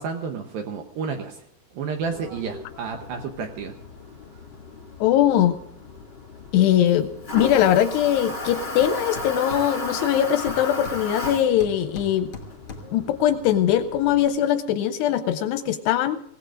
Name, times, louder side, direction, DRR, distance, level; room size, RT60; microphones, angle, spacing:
voice 1, 0.0-1.4 1.7-3.7, right 5 dB, 75° right, 4 dB, 2.3 m, -31 dB
Toilet flush, 2.0-14.3, left 2 dB, 20° left, 1.7 m, -36 dB
voice 2, 5.0-5.6 6.5-12.3 12.9-16.2, left 11 dB, 80° left, 10 dB, 2.5 m, -21 dB
Hammer, 8.4-8.5 8.8-10.1 10.5-13.1, left 3 dB, 35° left, 1.9 m, -41 dB
25.5 x 16.5 x 2.5 m, 0.73 s
omnidirectional pair, 5.3 m